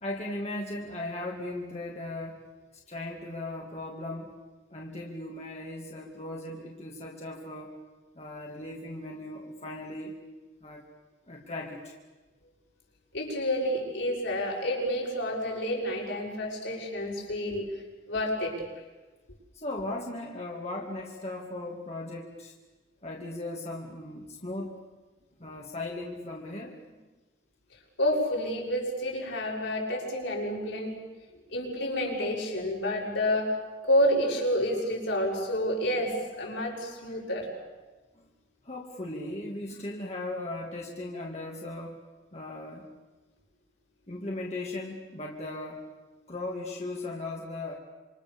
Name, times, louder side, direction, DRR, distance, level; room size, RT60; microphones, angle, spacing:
voice 1, 0.0-2.4 2.9-4.3 4.7-7.7 8.1-10.2 10.6-10.8 11.3-11.9 19.5-22.5 23.0-24.8 25.4-26.7 38.1-38.3 38.6-42.0 42.3-42.9 44.1-45.8 46.3-47.7, left 2 dB, 35° left, -1 dB, 2.6 m, -37 dB
voice 2, 13.1-17.7 18.1-18.6 28.0-30.9 31.5-33.6 33.8-37.5, equal, 80° left, -2 dB, 7.6 m, -29 dB
27.0 x 26.0 x 7.2 m, 1.2 s
head